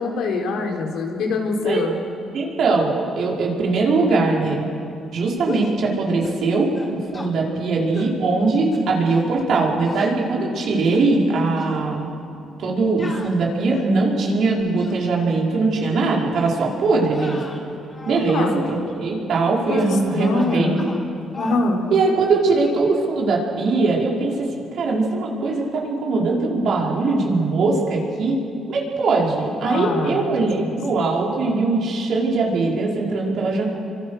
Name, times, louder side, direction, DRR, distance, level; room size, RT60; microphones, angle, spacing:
voice 1, 0.0-1.9 18.3-18.6 19.7-20.8 21.4-21.8 29.6-30.8, left 3 dB, 80° left, 1 dB, 3.8 m, -24 dB
voice 2, 2.3-4.6 5.1-12.1 12.6-17.4 18.1-20.7 21.9-28.4 28.7-33.6, right 3 dB, 70° right, -2 dB, 5.2 m, -21 dB
sound 1, 5.4-5.8 6.2-6.5 6.7-7.3 7.9-8.2 8.7-9.3 9.8-10.2 10.7-11.3 11.6-11.8 13.0-14.0 14.6-15.0 15.8-16.0 16.3-16.6 17.1-18.3 18.6-18.8 19.8-20.0 20.3-21.1 21.3-21.7, left 2 dB, 30° left, 4.9 m, -36 dB
29.0 x 24.5 x 6.6 m, 2.6 s
cardioid pair, 90°, 0 cm